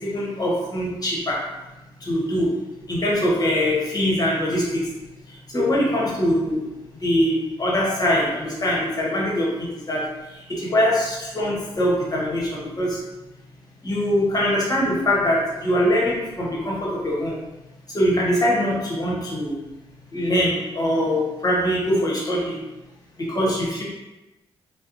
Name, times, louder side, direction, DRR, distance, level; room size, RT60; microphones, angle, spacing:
voice 1, 0.0-1.4 2.0-2.5 2.9-4.8 5.5-6.6 7.0-10.0 10.5-13.0 13.8-17.4 17.9-19.5 20.1-22.5 23.3-23.8, equal, 35° left, -4 dB, 0.9 m, -22 dB
2.8 x 2.1 x 2.5 m, 1.0 s
cardioid pair, 65°, 11 cm